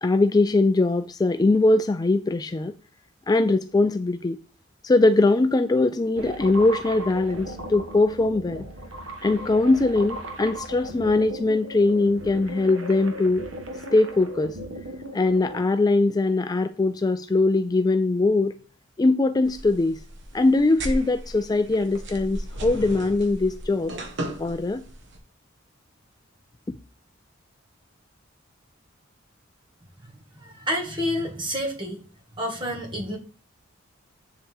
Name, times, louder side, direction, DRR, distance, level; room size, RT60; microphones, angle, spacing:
voice 1, 0.0-2.7 3.3-4.4 4.8-8.7 9.2-13.5 13.9-14.6 15.1-18.5 19.0-20.0 20.3-23.9 24.4-24.9, left 2 dB, 20° left, 0.3 m, -21 dB
sound 1, 6.2-15.6, right 1 dB, 85° right, 1.3 m, -37 dB
sound 2, 19.4-25.2, right 1 dB, 65° right, 1.4 m, -36 dB
voice 2, 30.3-32.0 32.4-33.2, equal, 25° right, 2.0 m, -29 dB
8.5 x 7.3 x 3.5 m
head